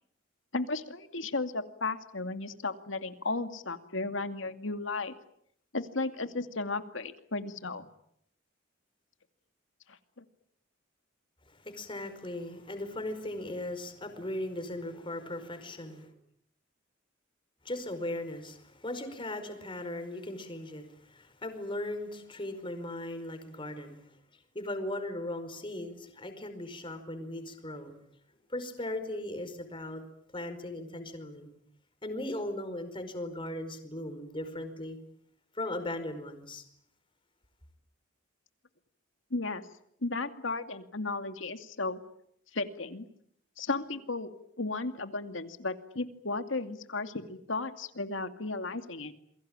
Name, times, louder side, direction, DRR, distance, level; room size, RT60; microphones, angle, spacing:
voice 1, 0.5-5.1 5.7-7.9 10.2-10.3 39.3-39.7 40.0-42.0 42.5-43.1 43.6-44.3 44.6-49.1, left 3 dB, 70° left, 8 dB, 2.4 m, -34 dB
voice 2, 11.5-16.1 17.6-24.1 24.5-27.9 28.5-30.0 30.3-31.5 32.0-35.0 35.5-36.6, left 1 dB, 25° left, 8 dB, 4.9 m, -38 dB
28.5 x 23.0 x 8.9 m, 0.72 s
head